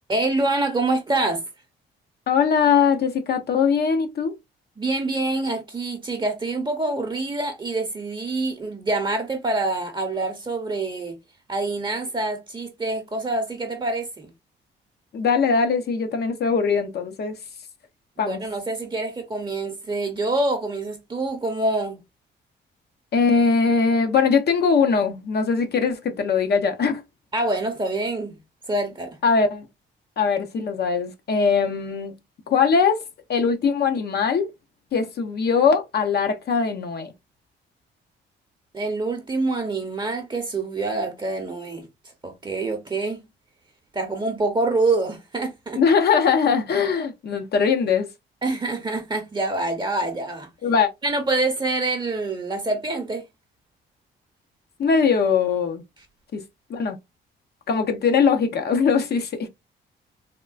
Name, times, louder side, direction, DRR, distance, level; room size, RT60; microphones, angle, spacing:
voice 1, 0.1-1.4 4.8-11.2 11.5-14.3 18.2-22.0 27.3-28.4 28.7-29.2 38.7-41.8 42.2-43.2 43.9-45.8 48.4-50.5 51.0-53.3, right 2 dB, 25° right, 0.7 m, -26 dB
voice 2, 2.3-4.3 15.1-17.4 18.2-18.4 23.1-27.0 29.2-29.7 30.2-32.1 32.5-33.0 33.3-34.5 34.9-37.1 45.7-48.1 50.6-50.9 54.8-55.8 56.3-56.4 56.7-57.0 57.7-59.5, left 5 dB, 55° left, 0.7 m, -21 dB
3.6 x 2.3 x 2.4 m
cardioid pair, 90°, 20 cm